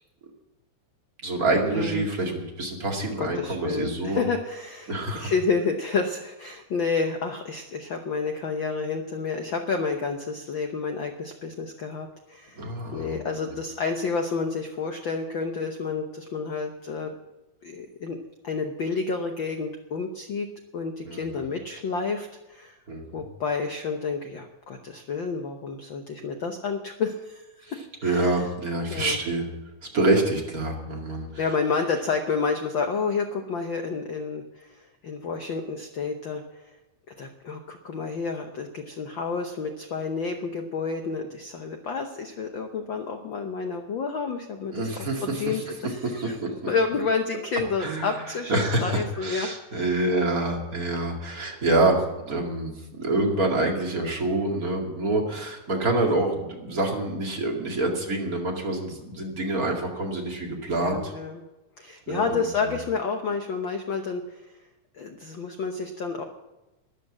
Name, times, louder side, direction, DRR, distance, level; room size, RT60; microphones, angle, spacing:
voice 1, 1.2-4.2 4.9-5.3 12.6-13.2 21.1-21.5 22.9-23.2 27.6-27.7 28.0-29.4 29.9-31.3 44.7-45.6 46.0-46.5 47.8-48.2 48.5-61.1 62.1-62.5, right 2 dB, 30° right, 0 dB, 2.5 m, -26 dB
voice 2, 1.7-2.3 3.2-17.1 17.6-18.2 18.4-20.5 20.7-22.8 23.1-28.5 28.9-29.2 31.4-36.7 37.2-44.9 45.2-46.4 46.7-48.5 48.8-49.8 60.8-61.4 61.8-64.5 64.9-66.2, left 4 dB, 65° left, 5 dB, 1.2 m, -30 dB
12.5 x 11.0 x 7.4 m, 1.0 s
omnidirectional pair, 3.3 m